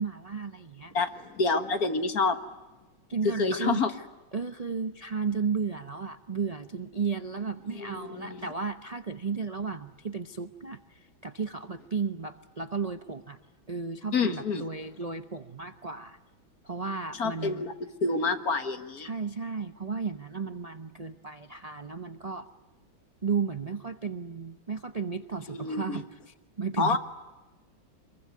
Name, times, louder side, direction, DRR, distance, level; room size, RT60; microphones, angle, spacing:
voice 1, 0.0-0.9 3.1-3.8 4.3-13.4 13.7-16.2 16.6-17.7 19.0-22.5 23.2-27.0, right 5 dB, 50° right, 9 dB, 0.4 m, -34 dB
voice 2, 0.9-2.4 3.4-3.9 7.7-8.4 14.1-14.6 17.1-17.7 18.0-19.1 25.5-26.0 26.8-27.0, left 4 dB, 50° left, 9 dB, 2.0 m, -28 dB
25.5 x 23.0 x 9.5 m, 1.1 s
omnidirectional pair, 2.2 m